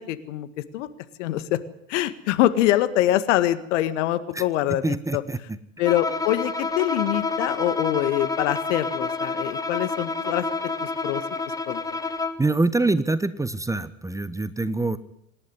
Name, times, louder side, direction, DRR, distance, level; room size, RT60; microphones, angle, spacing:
voice 1, 0.1-0.5 0.7-0.9 1.2-1.6 1.9-5.2 5.8-10.5 10.8-11.2 11.7-11.8, left 14 dB, 60° left, 13 dB, 1.8 m, -24 dB
voice 2, 4.7-5.6 12.4-15.0, right 3 dB, 10° right, 15 dB, 1.0 m, -25 dB
Bowed string instrument, 5.8-12.5, left 3 dB, 10° left, 1.6 m, -29 dB
26.0 x 11.0 x 9.9 m, 0.75 s
hypercardioid pair, 85°, 40 cm